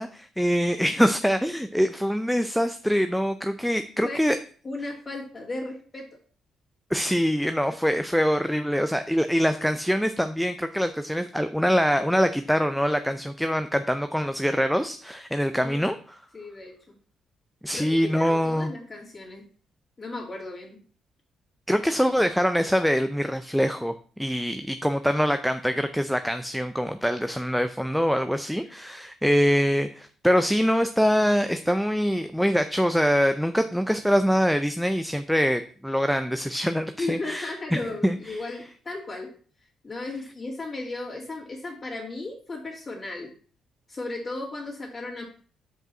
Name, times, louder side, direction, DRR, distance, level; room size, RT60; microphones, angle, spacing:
voice 1, 0.0-4.4 6.9-16.2 17.6-18.7 21.7-23.9 24.2-38.5, equal, ahead, 9 dB, 0.4 m, -24 dB
voice 2, 4.6-6.1 15.5-15.8 16.3-16.7 17.7-19.4 20.0-20.8 37.0-39.3 39.8-43.3 43.9-45.2, left 2 dB, 30° left, -8 dB, 2.7 m, -35 dB
5.3 x 5.0 x 5.9 m, 0.43 s
cardioid pair, 90°, 0 cm